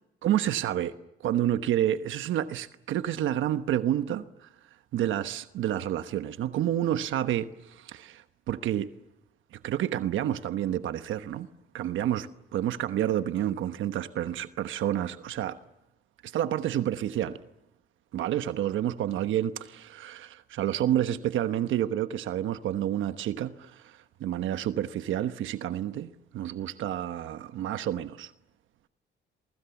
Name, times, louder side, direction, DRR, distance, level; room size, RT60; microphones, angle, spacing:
voice 1, 0.2-0.9 1.2-4.5 4.9-8.9 9.5-11.5 11.7-15.6 16.2-17.4 18.1-28.3, right 11 dB, 80° right, 1.1 m, -29 dB
28.0 x 24.0 x 7.1 m
cardioid pair, 90°, 20 cm